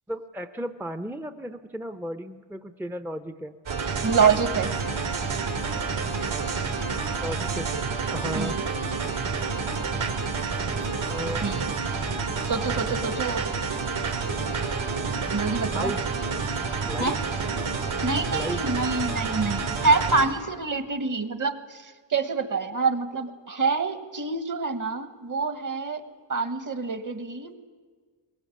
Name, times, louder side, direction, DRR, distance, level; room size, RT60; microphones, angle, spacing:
voice 1, 0.1-3.6 7.2-7.7 8.1-8.6 11.1-11.5 15.8-16.0 16.8-17.1 18.3-18.6, equal, 5° right, 8 dB, 0.7 m, -34 dB
sound 1, 3.7-20.3, right 4 dB, 75° right, 4.1 m, -29 dB
voice 2, 4.0-4.7 8.3-8.6 11.4-11.7 12.5-13.4 15.3-15.9 17.0-17.2 18.0-26.0 26.3-27.6, right 4 dB, 40° right, 10 dB, 1.5 m, -26 dB
22.0 x 19.5 x 8.5 m, 1.5 s
cardioid pair, 100°, 47 cm